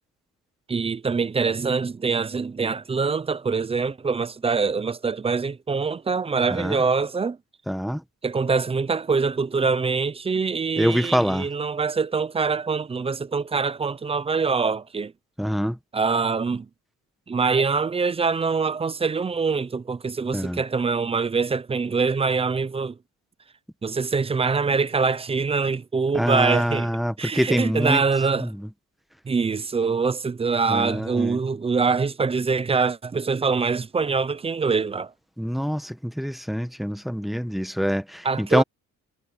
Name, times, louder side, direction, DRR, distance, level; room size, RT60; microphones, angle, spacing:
voice 1, 0.7-7.4 8.2-15.1 15.9-16.7 17.3-23.0 23.8-26.9 27.2-28.5 29.2-35.1 38.2-38.6, right 4 dB, 20° right, 0.5 m, -24 dB
voice 2, 6.5-6.8 7.7-8.0 10.8-11.5 15.4-15.8 20.3-20.6 26.1-28.0 28.4-28.7 30.7-31.4 35.4-38.6, equal, ahead, 1.0 m, -25 dB
cardioid pair, 155°, 32 cm